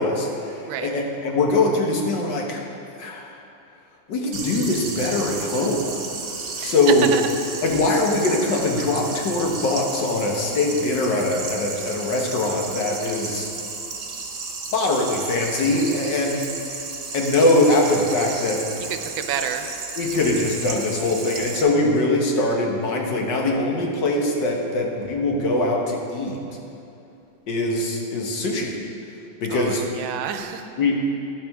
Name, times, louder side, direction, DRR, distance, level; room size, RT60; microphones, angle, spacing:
voice 1, 0.0-2.6 3.0-3.4 4.1-5.9 6.6-7.1 7.6-13.5 14.7-16.5 17.1-18.7 20.0-26.4 27.5-28.7 29.4-29.8 30.8-30.9, left 2 dB, 65° left, 0 dB, 1.8 m, -22 dB
sound 1, 4.3-21.6, right 4 dB, 55° right, 1.4 m, -33 dB
voice 2, 19.0-19.6 29.5-30.6, right 8 dB, 85° right, 7 dB, 1.5 m, -29 dB
12.0 x 11.0 x 3.6 m, 2.7 s
omnidirectional pair, 2.1 m